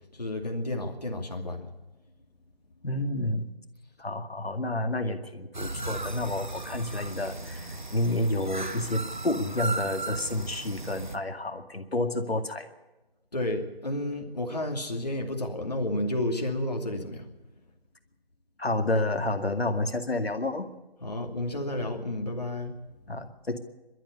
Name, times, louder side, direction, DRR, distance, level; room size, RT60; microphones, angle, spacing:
voice 1, 0.1-1.7 13.3-17.3 21.0-22.8, left 1 dB, 40° left, 3 dB, 2.7 m, -31 dB
voice 2, 2.8-3.5 4.0-12.7 18.6-20.7 23.1-23.6, left 2 dB, 80° left, 6 dB, 2.3 m, -30 dB
sound 1, 5.5-11.2, right 2 dB, 50° right, 1.5 m, -36 dB
22.5 x 13.0 x 9.8 m, 1.1 s
figure-of-eight pair, 175°, 30 cm